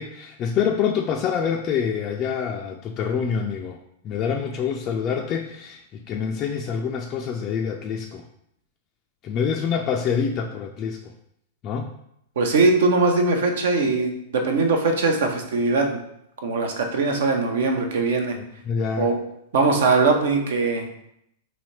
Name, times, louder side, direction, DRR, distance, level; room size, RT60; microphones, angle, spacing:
voice 1, 0.0-3.8 4.0-8.2 9.2-11.0 11.6-11.9 18.4-19.1, left 7 dB, 35° left, 1 dB, 0.3 m, -26 dB
voice 2, 12.4-16.0 16.4-18.4 19.0-19.2 19.5-20.8, right 3 dB, 65° right, 4 dB, 0.7 m, -21 dB
4.0 x 2.8 x 3.1 m, 0.75 s
figure-of-eight pair, 100°, 0 cm